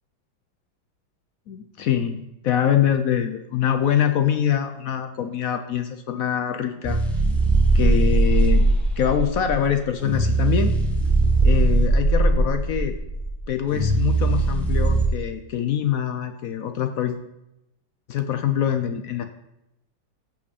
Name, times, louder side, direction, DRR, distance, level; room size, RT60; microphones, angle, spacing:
voice 1, 1.5-7.0 7.7-8.7 9.0-10.7 11.4-12.9 13.5-17.2 18.1-19.2, left 9 dB, 75° left, 8 dB, 0.8 m, -24 dB
sound 1, 6.8-15.1, right 2 dB, ahead, 0.9 m, -20 dB
14.5 x 5.7 x 4.1 m, 0.86 s
omnidirectional pair, 2.2 m